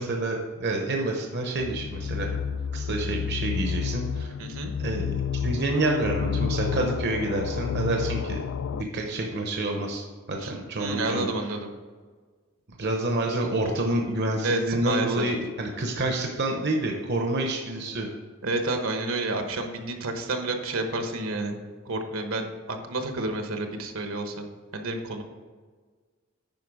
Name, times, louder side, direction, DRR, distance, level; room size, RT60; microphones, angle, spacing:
voice 1, 0.0-2.4 2.7-4.3 4.8-8.4 8.7-10.0 10.3-11.5 12.8-18.1, right 2 dB, 50° right, 2 dB, 0.8 m, -28 dB
sound 1, 1.6-8.8, left 7 dB, 60° left, 0.3 m, -30 dB
voice 2, 4.4-4.7 10.4-10.5 10.8-11.7 14.4-15.2 18.4-21.6 21.8-24.4 24.7-25.2, right 2 dB, 70° right, 5 dB, 1.1 m, -30 dB
9.3 x 5.4 x 4.8 m, 1.5 s
head